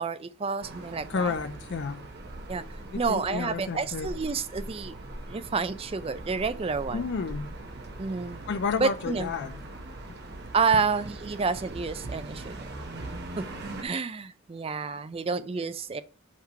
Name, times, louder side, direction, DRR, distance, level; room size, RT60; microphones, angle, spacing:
voice 1, 0.0-1.3 2.5-2.6 2.9-4.9 5.3-7.1 8.0-8.4 8.8-9.3 10.5-12.6 13.4-13.5 13.8-16.0, right 5 dB, 25° right, 0.4 m, -29 dB
sound 1, 0.6-13.8, right 2 dB, 50° right, 1.0 m, -41 dB
voice 2, 1.1-2.1 2.9-4.1 6.9-7.5 8.5-9.5, left 5 dB, 50° left, 0.4 m, -31 dB
5.8 x 3.1 x 5.6 m
head